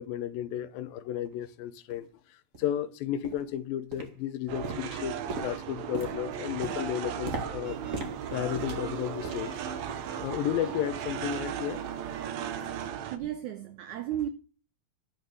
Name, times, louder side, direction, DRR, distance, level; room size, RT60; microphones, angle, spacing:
voice 1, 0.0-7.8 8.3-9.6 10.2-11.8, left 11 dB, 75° left, 2.5 m, -33 dB
sound 1, 1.2-1.3 1.9-2.0 2.5-2.7 3.2-3.5 3.9-4.4 4.6-9.6 9.9-10.2 10.5-10.7 11.2-11.3, right 1 dB, 30° right, 1.6 m, -40 dB
sound 2, 4.5-13.2, right 9 dB, 70° right, 1.7 m, -37 dB
sound 3, 7.6-12.9, right 6 dB, 45° right, 3.0 m, -43 dB
voice 2, 13.0-14.3, right 11 dB, 90° right, 1.6 m, -34 dB
12.0 x 5.6 x 8.0 m
omnidirectional pair, 4.3 m